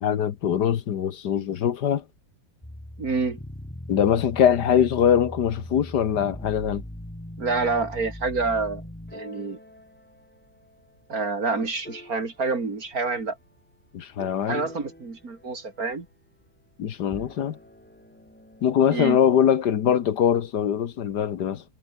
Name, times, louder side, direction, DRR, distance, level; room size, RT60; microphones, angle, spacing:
voice 1, 0.0-2.0 3.9-6.8 13.9-14.7 16.8-17.6 18.6-21.6, left 9 dB, 70° left, 1.7 m, -22 dB
sound 1, 2.6-10.9 11.5-12.4 14.2-15.9 17.0-19.6, left 1 dB, 5° left, 1.4 m, -41 dB
voice 2, 3.0-3.4 7.4-8.8 9.1-9.6 11.1-13.4 14.4-16.1 18.9-19.2, right 4 dB, 55° right, 3.4 m, -27 dB
omnidirectional pair, 1.9 m